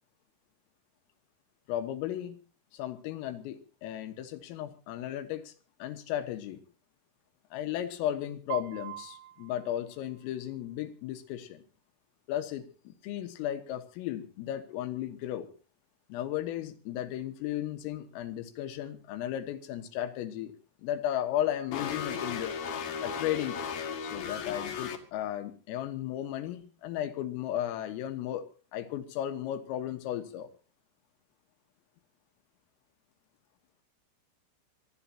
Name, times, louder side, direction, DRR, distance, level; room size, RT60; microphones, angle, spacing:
voice 1, 1.7-2.4 2.7-5.5 5.8-6.6 7.5-11.6 12.3-15.5 16.1-20.5 20.8-22.5 23.0-23.6 24.0-28.5 28.7-30.5, left 11 dB, 85° left, 8 dB, 4.0 m, -35 dB
Piano, 8.5-10.5, right 14 dB, 80° right, 3.4 m, -43 dB
sound 1, 21.7-25.0, left 6 dB, 55° left, 3.2 m, -35 dB
26.5 x 14.5 x 2.9 m, 0.36 s
omnidirectional pair, 5.9 m